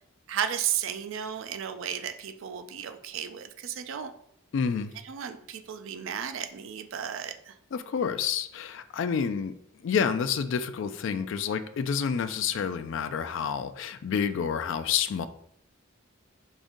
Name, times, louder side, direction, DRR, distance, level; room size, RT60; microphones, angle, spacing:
voice 1, 0.3-4.1 5.0-7.5, right 9 dB, 65° right, 9 dB, 0.4 m, -34 dB
voice 2, 4.5-4.9 7.7-9.5 9.8-15.3, left 7 dB, 60° left, 10 dB, 0.3 m, -29 dB
5.0 x 2.6 x 3.7 m, 0.68 s
head